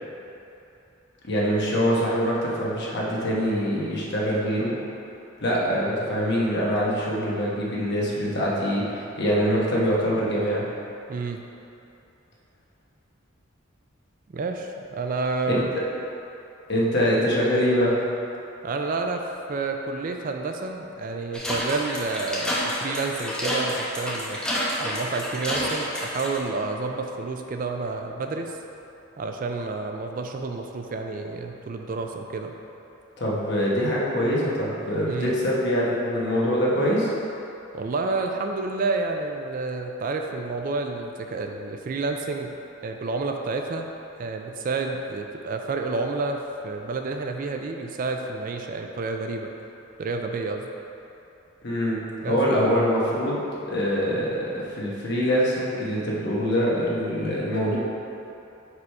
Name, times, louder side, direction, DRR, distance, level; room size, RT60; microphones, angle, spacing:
voice 1, 1.2-4.7 5.4-10.6 15.5-15.8 16.7-18.0 33.2-37.1 51.6-52.0 52.3-57.8, equal, 55° left, -5 dB, 1.2 m, -24 dB
voice 2, 11.1-11.4 14.3-15.6 18.6-19.2 19.5-24.4 24.8-28.6 29.2-32.5 35.1-35.4 37.7-42.5 42.8-43.9 44.2-49.5 50.0-50.7 52.2-52.4, right 3 dB, 40° right, 4 dB, 0.3 m, -29 dB
sound 1, 21.3-26.4, equal, 5° left, 0.8 m, -29 dB
4.9 x 4.9 x 4.6 m, 2.9 s
head